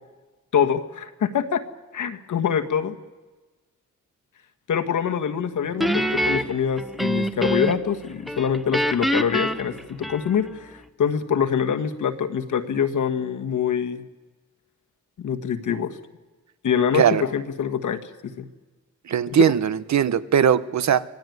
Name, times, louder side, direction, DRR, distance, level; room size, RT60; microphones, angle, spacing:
voice 1, 0.5-1.6 1.9-3.0 4.7-14.1 15.2-15.9 16.6-18.5 19.3-19.4, left 7 dB, 70° left, 8 dB, 1.6 m, -25 dB
Guitar, 5.8-7.9 8.3-10.6, equal, ahead, 1.0 m, -25 dB
voice 2, 19.1-21.0, right 8 dB, 60° right, 14 dB, 0.9 m, -19 dB
24.5 x 16.0 x 9.4 m, 1.3 s
wide cardioid pair, 120°, 31 cm